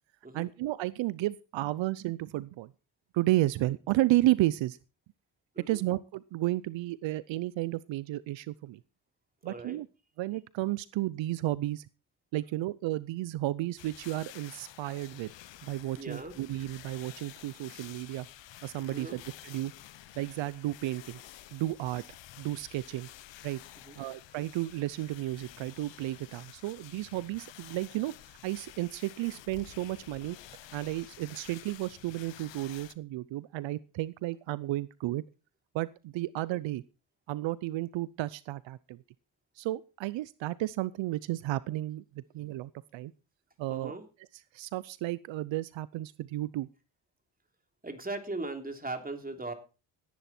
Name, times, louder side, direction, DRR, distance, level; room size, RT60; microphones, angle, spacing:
voice 1, 0.3-2.7 3.1-4.8 5.7-8.8 9.4-9.9 10.2-11.9 12.3-15.3 15.6-18.3 18.6-19.7 20.2-21.2 21.5-22.0 22.4-23.1 23.4-23.6 24.0-28.1 28.4-30.4 30.7-35.2 35.7-36.8 37.3-39.0 39.6-43.1 43.6-43.9 44.5-46.7, right 16 dB, 80° right, 19 dB, 0.6 m, -32 dB
voice 2, 9.4-9.8 15.9-16.4 18.9-19.2 23.8-24.0 43.7-44.0 47.8-49.5, right 2 dB, 20° right, 5 dB, 3.2 m, -39 dB
sound 1, 13.8-32.9, left 14 dB, 75° left, 0.9 m, -51 dB
16.5 x 10.5 x 4.3 m, 0.33 s
cardioid pair, 75°, 44 cm